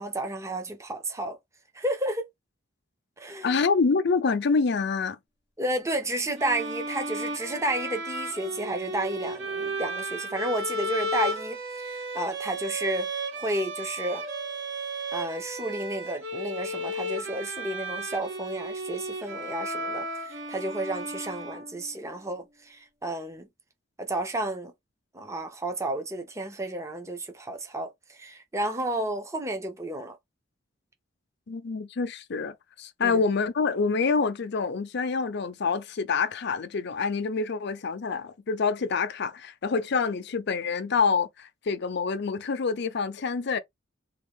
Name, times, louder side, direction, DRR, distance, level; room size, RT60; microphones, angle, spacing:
voice 1, 0.0-1.4 1.7-2.2 3.2-3.6 5.6-13.1 13.4-14.2 15.1-23.5 24.0-24.7 25.1-30.2 33.0-33.2, right 1 dB, 15° right, 0.6 m, -32 dB
voice 2, 3.4-5.2 31.5-43.6, left 4 dB, 60° left, 0.5 m, -27 dB
sound 1, 6.4-22.0, right 1 dB, 60° right, 1.0 m, -34 dB
3.5 x 2.3 x 3.5 m
head